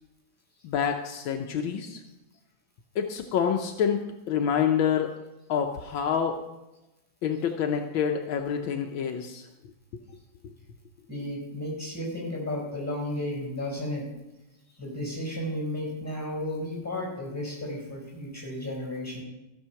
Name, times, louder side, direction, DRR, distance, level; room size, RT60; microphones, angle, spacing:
voice 1, 0.6-2.0 2.9-5.1 5.5-6.4 7.2-9.5, left 8 dB, 75° left, 4 dB, 1.5 m, -27 dB
voice 2, 11.1-14.1 14.8-19.2, left 1 dB, 5° left, -3 dB, 4.2 m, -33 dB
14.0 x 6.5 x 5.8 m, 0.96 s
omnidirectional pair, 2.2 m